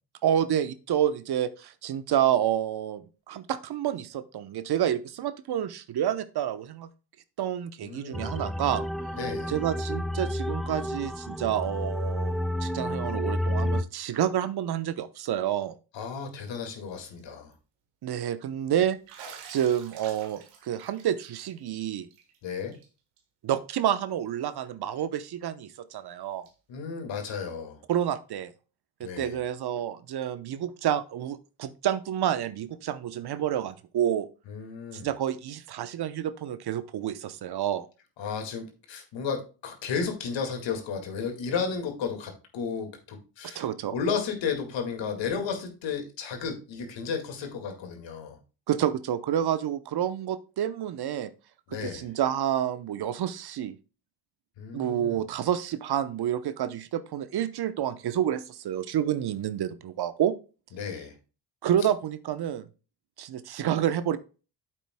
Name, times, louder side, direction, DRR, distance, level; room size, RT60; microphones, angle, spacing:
voice 1, 0.2-6.9 7.4-8.8 9.5-12.3 12.6-15.7 18.0-19.0 19.3-22.1 23.4-26.5 27.9-28.5 29.0-34.3 34.9-37.9 43.4-43.9 48.7-51.3 51.8-53.8 54.7-60.3 61.6-62.6 63.2-64.2, right 10 dB, 55° right, 13 dB, 0.9 m, -29 dB
voice 2, 7.8-8.3 9.1-9.5 15.9-17.5 22.4-22.8 26.7-27.8 29.0-29.4 34.5-35.1 38.2-43.6 43.9-48.4 51.7-52.1 54.6-55.2 60.7-61.1, left 6 dB, 70° left, 5 dB, 2.1 m, -33 dB
sound 1, 8.1-13.8, left 1 dB, ahead, 0.4 m, -30 dB
Bathtub (filling or washing), 16.8-17.2 17.5-17.6 19.1-22.4 22.7-22.9 23.2-23.3 24.6-24.7 26.4-26.5, right 6 dB, 90° right, 1.5 m, -48 dB
9.1 x 7.8 x 2.2 m, 0.33 s
supercardioid pair, 55°, 47 cm